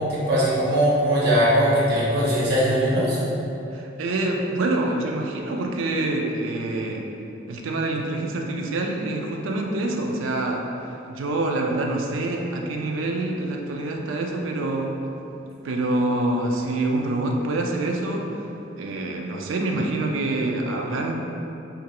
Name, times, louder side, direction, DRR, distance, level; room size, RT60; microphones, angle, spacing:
voice 1, 0.0-3.2, equal, 55° right, -8 dB, 0.8 m, -20 dB
voice 2, 3.7-7.0 7.5-10.6 11.1-14.9 15.6-18.4 18.8-21.1, right 2 dB, 80° right, 1 dB, 0.3 m, -26 dB
2.9 x 2.4 x 2.9 m, 2.8 s
head